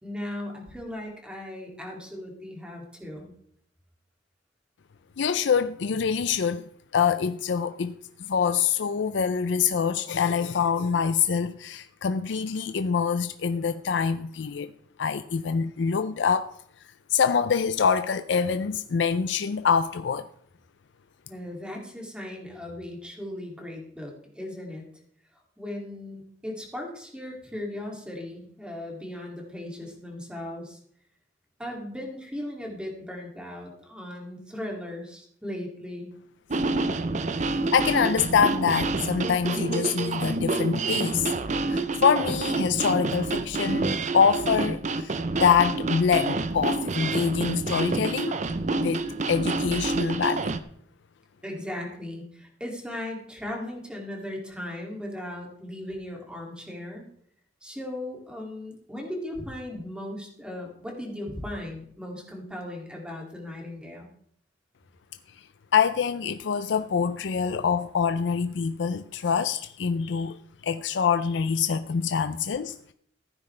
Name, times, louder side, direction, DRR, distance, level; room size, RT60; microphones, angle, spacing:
voice 1, 0.0-3.3 21.3-24.8 25.6-30.8 31.6-36.1 51.4-57.1 57.6-64.1, left 1 dB, 5° right, 2.5 m, -37 dB
voice 2, 5.2-6.6 6.9-14.7 15.0-16.5 17.1-20.2 37.7-41.3 41.7-43.9 44.1-48.4 48.8-50.5 65.7-70.4 70.6-72.9, left 6 dB, 75° left, 0.4 m, -25 dB
sound 1, 36.5-50.6, right 3 dB, 40° right, 0.6 m, -28 dB
15.0 x 9.5 x 3.3 m
head